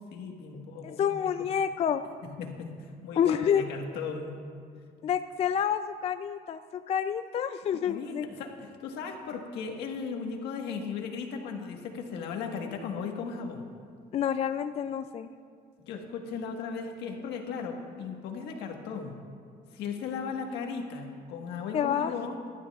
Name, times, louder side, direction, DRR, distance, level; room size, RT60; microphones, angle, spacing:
voice 1, 0.1-1.2 2.2-4.4 7.9-13.7 15.9-19.1 19.7-22.4, left 5 dB, 85° left, 2 dB, 1.5 m, -37 dB
voice 2, 0.8-2.0 3.2-3.7 5.0-8.3 14.1-15.3 21.7-22.1, left 8 dB, 40° left, 10 dB, 0.3 m, -28 dB
18.0 x 12.0 x 2.4 m, 2.2 s
cardioid pair, 110°, 17 cm